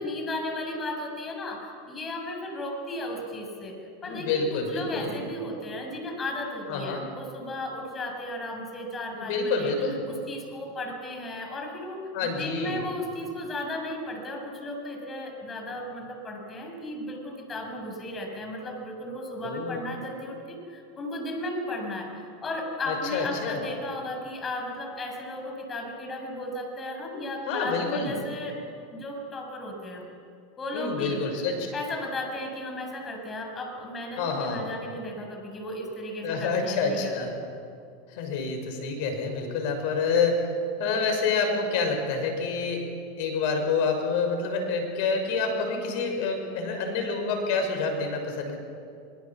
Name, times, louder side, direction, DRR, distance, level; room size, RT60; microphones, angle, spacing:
voice 1, 0.0-3.8 4.0-9.8 10.1-28.6 28.9-30.0 30.6-31.2 31.7-37.3, left 1 dB, 25° left, 2 dB, 6.8 m, -35 dB
voice 2, 4.0-5.1 6.7-7.0 9.1-10.0 12.1-12.8 19.4-19.8 22.9-23.6 27.5-28.1 30.7-31.7 34.2-34.6 36.2-37.3 38.1-40.5 40.8-42.8 43.2-48.6, left 4 dB, 60° left, 5 dB, 6.1 m, -28 dB
24.0 x 23.0 x 7.4 m, 2.4 s
hypercardioid pair, 95°, 0 cm